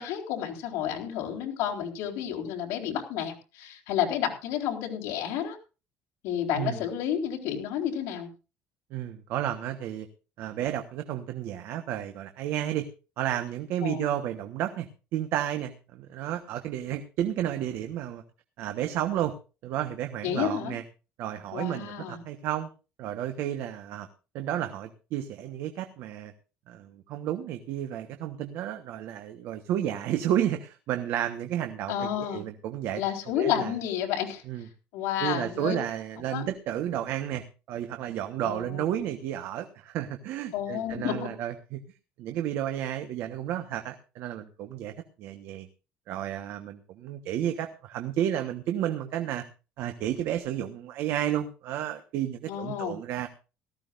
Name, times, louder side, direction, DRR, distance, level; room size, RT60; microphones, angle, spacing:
voice 1, 0.0-5.6 6.2-8.3 13.8-14.1 20.2-20.8 21.5-22.2 31.9-32.4 33.0-34.4 34.9-35.8 36.3-36.4 38.4-39.0 40.5-41.3 52.5-53.0, left 9 dB, 75° left, 1 dB, 4.3 m, -31 dB
voice 2, 8.9-10.1 10.4-12.9 13.2-18.2 18.6-19.3 19.6-20.8 21.2-22.7 23.0-24.1 24.3-26.3 26.7-33.0 33.4-33.7 34.5-34.7 35.2-41.8 42.2-44.9 45.2-45.7 46.1-49.4 49.8-53.3, right 11 dB, 55° right, 7 dB, 1.2 m, -32 dB
18.0 x 15.0 x 2.6 m, 0.32 s
cardioid pair, 175°, 5 cm